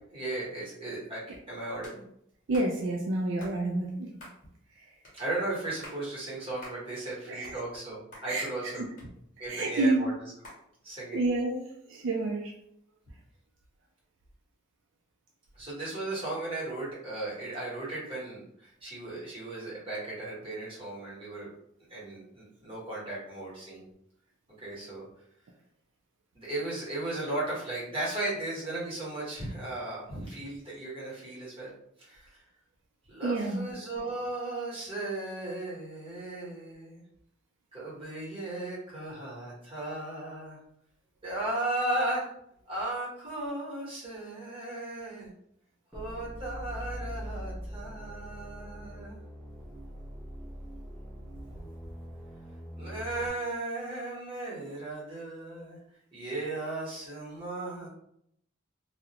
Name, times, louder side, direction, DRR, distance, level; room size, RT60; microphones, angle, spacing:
voice 1, 0.1-2.0 5.1-8.9 9.4-10.3 10.8-11.2 15.5-21.5 21.9-23.8 24.6-25.0 26.3-31.7 32.0-32.4 33.1-37.0 37.7-40.6 41.2-42.3 42.7-45.3 45.9-49.2 52.8-55.8 56.1-57.9, right 2 dB, 25° right, -7 dB, 1.0 m, -36 dB
sound 1, 1.8-2.0 2.5-2.7 3.4-3.6 4.2-4.4 5.0-5.2 5.7-6.0 6.6-6.8 7.2-7.9 8.1-8.3 9.0-9.5 10.4-10.6, left 1 dB, 40° left, 0.9 m, -48 dB
voice 2, 2.5-4.1 7.4-7.6 8.3-8.5 9.5-10.1 11.1-12.5 33.2-33.7, right 2 dB, 65° right, 0 dB, 0.3 m, -29 dB
sound 2, 45.9-53.3, equal, ahead, 0.5 m, -42 dB
2.4 x 2.0 x 2.8 m, 0.73 s
head